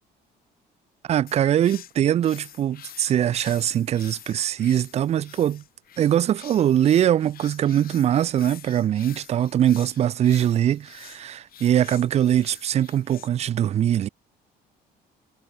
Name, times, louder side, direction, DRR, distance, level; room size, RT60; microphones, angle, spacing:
voice 1, 1.1-5.6 6.0-14.1, right 10 dB, 40° right, 0.4 m, -22 dB
sound 1, 1.3-13.3, left 11 dB, 60° left, 4.3 m, -47 dB
cardioid pair, 110°, 17 cm